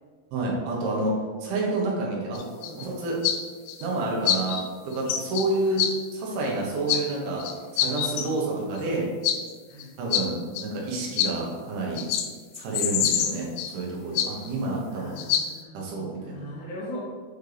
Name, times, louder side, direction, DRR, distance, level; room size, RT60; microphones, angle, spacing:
voice 1, 0.3-1.1 1.4-2.4 2.8-3.2 3.8-4.6 4.9-5.8 6.1-7.4 7.7-9.1 10.0-12.0 12.5-13.5 13.7-15.2 15.7-16.4, right 2 dB, 75° right, -3 dB, 3.4 m, -29 dB
sound 1, 2.4-2.9 3.2-3.4 3.7-3.9 4.3-4.6 5.0-5.5 5.8-5.9 6.9-7.0 7.4-8.3 8.8-8.9 9.2-9.4 9.8-9.9 10.1-10.3 10.6-10.7 11.2-11.3 12.0-12.3 12.6-13.7 14.2-14.5 15.2-15.5, left 10 dB, 90° left, 3.3 m, -25 dB
voice 2, 12.7-13.0 14.9-17.0, equal, 70° left, -6 dB, 2.6 m, -41 dB
8.1 x 4.3 x 3.4 m, 1.5 s
omnidirectional pair, 5.9 m